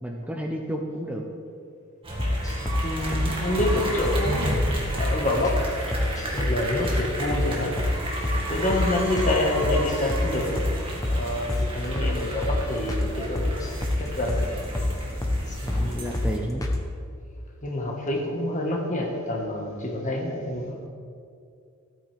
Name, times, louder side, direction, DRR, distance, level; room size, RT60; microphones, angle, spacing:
voice 1, 0.0-1.2 15.6-16.6, right 1 dB, 5° right, 1 dB, 0.7 m, -31 dB
sound 1, 2.0-16.4, right 1 dB, 25° right, 2.1 m, -33 dB
sound 2, 2.2-2.8 3.1-3.3 3.6-3.7 4.1-4.2 4.5-4.7 5.0-5.1 5.4-5.6 5.9-6.5 6.8-7.0 7.3-7.5 7.8-7.9 8.2-8.4 8.7-8.9 9.2-9.3 9.6-10.3 10.6-10.7 11.0-11.2 11.5-11.7 12.0-12.1 12.4-12.6 12.9-13.1 13.4-14.0 14.3-14.4 14.7-14.9 15.2-15.4 15.7-15.8 16.1-16.3 16.6-16.8, left 1 dB, 15° left, 1.0 m, -25 dB
voice 2, 2.8-5.6 6.3-7.8 8.5-10.7 11.0-13.5 14.0-14.5 15.5-16.2 17.6-20.9, left 1 dB, 35° left, 1 dB, 1.6 m, -27 dB
15.0 x 9.0 x 3.5 m, 2.4 s
head